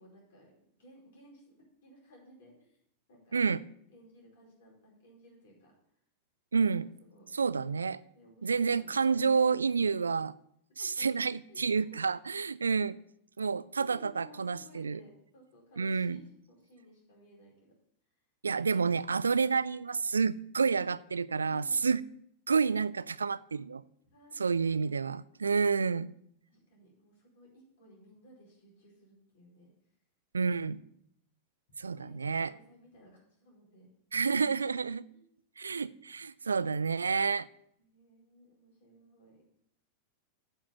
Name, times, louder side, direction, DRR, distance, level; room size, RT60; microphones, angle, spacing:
voice 1, 0.0-1.5 1.8-2.8 3.1-3.4 3.9-5.9 6.7-7.3 8.1-9.2 9.8-10.1 10.8-11.1 11.5-11.6 13.8-17.7 21.3-21.9 24.0-25.1 26.5-29.7 31.8-33.9 35.1-35.3 37.8-39.4, equal, 55° left, -2 dB, 4.9 m, -58 dB
voice 2, 6.5-6.9 7.3-8.0 8.4-10.3 10.8-13.0 13.4-15.0 15.8-16.2 18.4-22.0 22.5-23.8 24.4-26.1 30.3-30.8 31.8-32.5 34.1-35.0 35.6-37.5, right 5 dB, 75° right, 19 dB, 0.3 m, -29 dB
8.8 x 7.3 x 7.1 m, 0.72 s
figure-of-eight pair, 90°, 0 cm